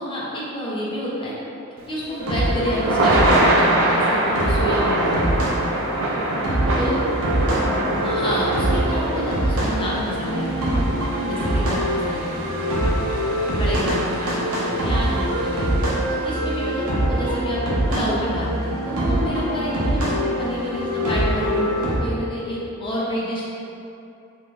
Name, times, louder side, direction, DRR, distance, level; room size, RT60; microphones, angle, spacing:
voice 1, 0.0-1.3 1.9-5.7 6.8-7.0 8.0-12.7 13.6-15.7 16.1-23.5, equal, 25° left, -6 dB, 0.5 m, -29 dB
Thunder / Rain, 1.9-16.1, right 1 dB, 60° right, 0.4 m, -25 dB
sound 1, 2.2-22.0, right 1 dB, 80° right, 0.8 m, -24 dB
3.6 x 3.1 x 2.4 m, 2.7 s
head